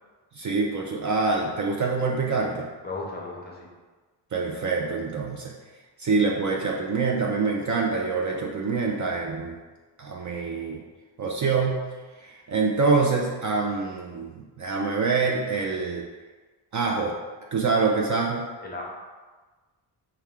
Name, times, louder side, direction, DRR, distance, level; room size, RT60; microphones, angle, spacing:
voice 1, 0.3-2.7 4.3-5.5 6.0-9.6 10.0-10.8 11.2-11.8 12.2-16.0 16.7-17.2 17.5-18.5, right 4 dB, 40° right, 0 dB, 0.5 m, -25 dB
voice 2, 2.8-3.7 18.6-18.8, left 3 dB, 20° left, -2 dB, 0.6 m, -35 dB
4.4 x 2.3 x 3.5 m, 1.3 s
cardioid pair, 125°, 47 cm